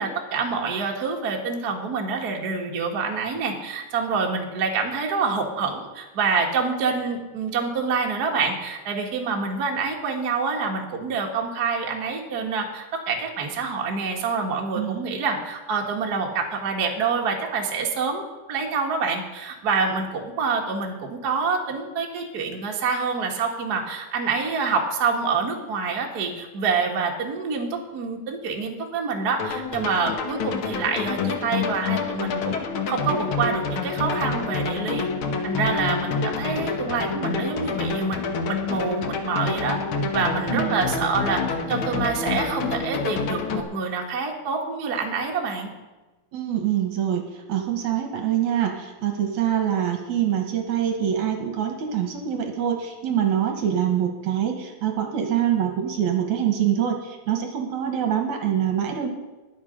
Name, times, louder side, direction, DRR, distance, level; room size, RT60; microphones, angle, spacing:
voice 1, 0.0-35.1 35.4-39.8 40.1-45.7, right 4 dB, 45° right, 1 dB, 1.3 m, -26 dB
sound 1, 29.4-43.6, left 4 dB, 85° left, 1.1 m, -27 dB
voice 2, 46.3-59.1, right 9 dB, 65° right, 4 dB, 2.3 m, -25 dB
20.5 x 7.2 x 5.1 m, 1.1 s
omnidirectional pair, 4.0 m